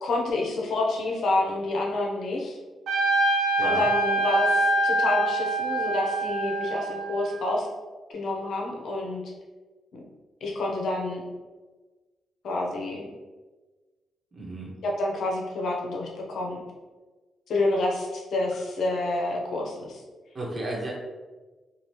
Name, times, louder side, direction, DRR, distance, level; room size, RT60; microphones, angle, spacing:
voice 1, 0.0-2.6 3.6-7.7 8.1-9.2 9.9-10.0 10.4-11.2 12.4-13.1 14.8-16.6 17.5-20.0, left 2 dB, 75° left, -1 dB, 0.7 m, -28 dB
Trumpet, 2.9-7.6, right 1 dB, 85° right, 0.5 m, -25 dB
voice 2, 14.3-14.7 20.3-20.9, right 2 dB, 40° right, -4 dB, 1.1 m, -33 dB
3.2 x 2.4 x 2.8 m, 1.3 s
cardioid pair, 70°, 0 cm